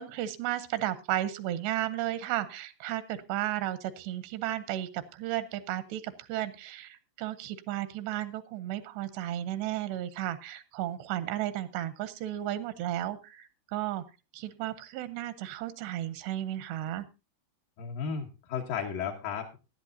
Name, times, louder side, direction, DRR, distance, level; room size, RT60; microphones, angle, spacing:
voice 1, 0.0-14.0 14.3-17.1, right 13 dB, 90° right, 14 dB, 2.9 m, -34 dB
voice 2, 17.8-19.6, left 6 dB, 65° left, -1 dB, 2.6 m, -34 dB
17.0 x 11.5 x 2.7 m, 0.28 s
omnidirectional pair, 4.8 m